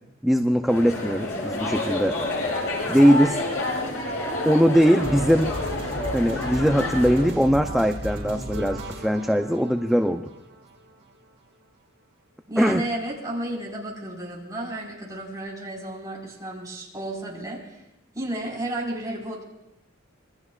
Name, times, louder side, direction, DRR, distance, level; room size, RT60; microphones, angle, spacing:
voice 1, 0.2-2.2 2.9-3.4 4.4-5.5 6.1-10.2 12.6-12.8, equal, ahead, 4 dB, 0.5 m, -20 dB
sound 1, 0.7-7.3, left 2 dB, 85° left, 6.6 m, -29 dB
sound 2, 5.0-11.0, right 1 dB, 50° right, 4.6 m, -35 dB
voice 2, 12.5-17.8 18.1-19.4, right 1 dB, 15° right, -3 dB, 4.5 m, -32 dB
26.5 x 21.5 x 2.4 m, 0.90 s
head